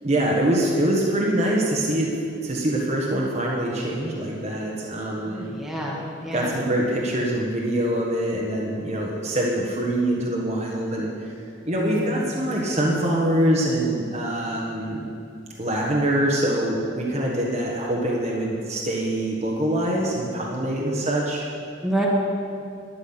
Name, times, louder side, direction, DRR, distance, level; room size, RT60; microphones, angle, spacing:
voice 1, 0.0-2.1 2.4-5.4 6.3-11.3 11.6-15.1 15.6-21.5, right 1 dB, 35° right, -3 dB, 1.5 m, -24 dB
voice 2, 5.2-6.6 11.7-12.2 21.8-22.1, right 1 dB, ahead, -4 dB, 1.6 m, -29 dB
12.0 x 9.8 x 6.0 m, 2.5 s
head